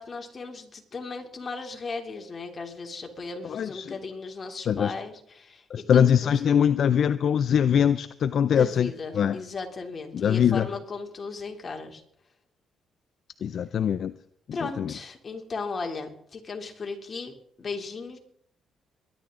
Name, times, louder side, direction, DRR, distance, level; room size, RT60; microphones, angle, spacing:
voice 1, 0.0-5.6 5.9-6.3 8.5-12.0 14.5-18.2, left 4 dB, 35° left, 3.0 m, -36 dB
voice 2, 3.4-3.9 4.7-4.9 5.7-9.4 10.1-10.7 13.4-14.1 14.8-14.9, left 8 dB, 60° left, 0.5 m, -22 dB
22.0 x 11.5 x 3.8 m
cardioid pair, 90°, 0 cm